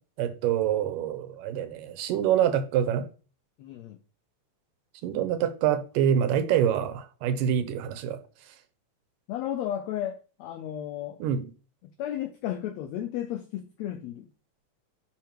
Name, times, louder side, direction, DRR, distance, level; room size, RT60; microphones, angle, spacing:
voice 1, 0.2-3.0 5.0-8.2 11.2-11.4, right 9 dB, 85° right, 2.5 m, -26 dB
voice 2, 3.6-4.0 9.3-11.3 12.0-14.3, left 11 dB, 85° left, 1.5 m, -33 dB
11.0 x 4.7 x 3.0 m
omnidirectional pair, 3.8 m